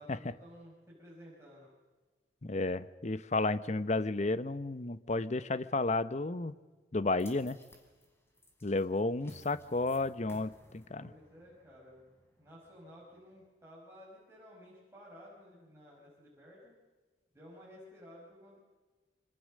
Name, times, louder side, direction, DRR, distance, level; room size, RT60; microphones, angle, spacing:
voice 1, 0.0-1.7 11.0-12.1 12.4-16.8 17.3-18.6, equal, 15° right, -5 dB, 5.8 m, -54 dB
voice 2, 2.4-6.5 6.9-7.6 8.6-11.1, left 2 dB, 40° left, 14 dB, 0.8 m, -32 dB
sound 1, 7.2-13.5, equal, 15° left, 4.3 m, -59 dB
26.5 x 25.0 x 6.5 m, 1.3 s
head